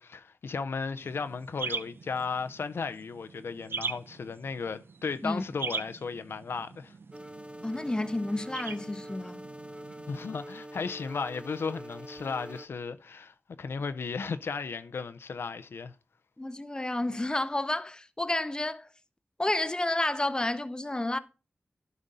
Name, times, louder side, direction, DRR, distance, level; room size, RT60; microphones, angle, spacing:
voice 1, 0.0-6.9 10.1-15.9, left 5 dB, 80° left, 0.5 m, -35 dB
sound 1, 1.0-10.3, right 4 dB, 70° right, 0.5 m, -41 dB
sound 2, 7.1-12.7, right 1 dB, 25° right, 0.6 m, -45 dB
voice 2, 7.6-9.4 16.4-18.9 19.4-21.2, left 1 dB, 20° left, 0.6 m, -30 dB
11.0 x 5.2 x 4.0 m
cardioid pair, 50°, 4 cm